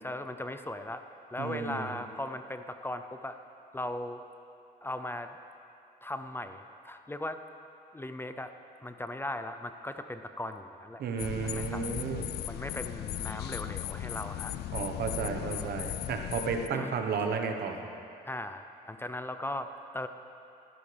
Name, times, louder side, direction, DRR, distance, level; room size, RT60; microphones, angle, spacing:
voice 1, 0.0-1.0 1.3-3.4 3.7-4.3 4.8-5.3 6.0-7.4 7.9-8.5 8.8-11.0 11.4-11.9 12.4-14.6 15.4-15.9 16.7-17.3 18.2-20.1, left 1 dB, 15° left, 8 dB, 0.6 m, -38 dB
voice 2, 1.4-1.9 11.0-12.3 14.7-17.9, right 5 dB, 65° right, 4 dB, 1.3 m, -33 dB
sound 1, 11.2-16.7, left 13 dB, 70° left, 0.4 m, -37 dB
18.5 x 12.5 x 3.5 m, 2.7 s
cardioid pair, 80°, 17 cm